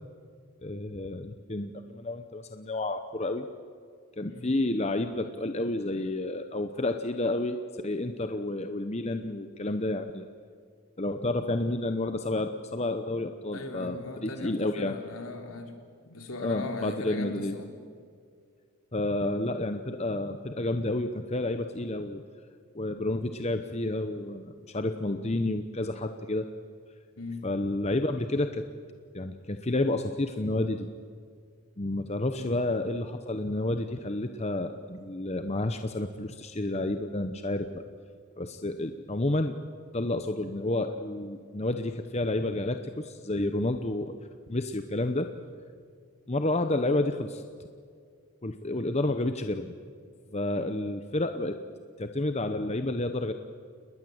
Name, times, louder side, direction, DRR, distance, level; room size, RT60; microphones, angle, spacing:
voice 1, 0.6-3.5 4.2-10.3 11.0-15.0 16.4-17.5 18.9-22.2 22.7-26.5 27.4-28.7 29.1-30.9 31.8-37.8 38.4-39.6 39.9-44.2 44.5-45.3 46.3-47.4 48.4-49.8 50.3-51.6 52.0-53.3, left 2 dB, 30° left, 8 dB, 0.9 m, -30 dB
voice 2, 13.5-15.8 16.0-17.7 27.2-27.5 32.4-32.6, left 2 dB, 70° left, 4 dB, 3.3 m, -38 dB
29.0 x 20.5 x 7.9 m, 2.1 s
head